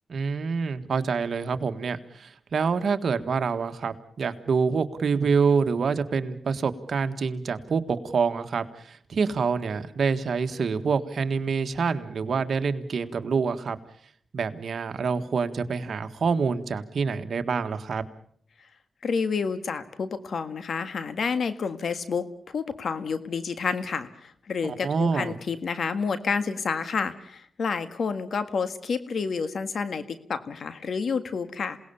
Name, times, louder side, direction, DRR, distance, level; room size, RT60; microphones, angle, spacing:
voice 1, 0.1-13.8 14.3-18.0 24.6-25.4, right 5 dB, 70° right, 8 dB, 1.6 m, -26 dB
voice 2, 19.0-31.8, left 5 dB, 70° left, 11 dB, 1.7 m, -29 dB
27.5 x 18.5 x 7.1 m, 0.63 s
cardioid pair, 70°, 0 cm